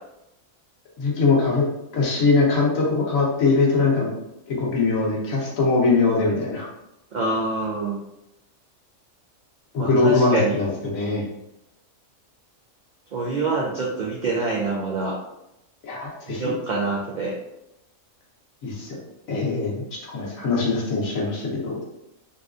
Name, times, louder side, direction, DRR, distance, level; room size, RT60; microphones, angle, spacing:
voice 1, 1.0-1.7 1.9-4.1 4.5-6.7 9.7-11.2 15.8-16.6 18.6-18.9 19.3-21.8, left 3 dB, 90° left, -4 dB, 1.4 m, -22 dB
voice 2, 7.1-8.0 9.8-10.5 13.1-15.2 16.3-17.3, right 2 dB, 90° right, -2 dB, 0.4 m, -26 dB
4.0 x 2.4 x 2.4 m, 0.87 s
omnidirectional pair, 1.4 m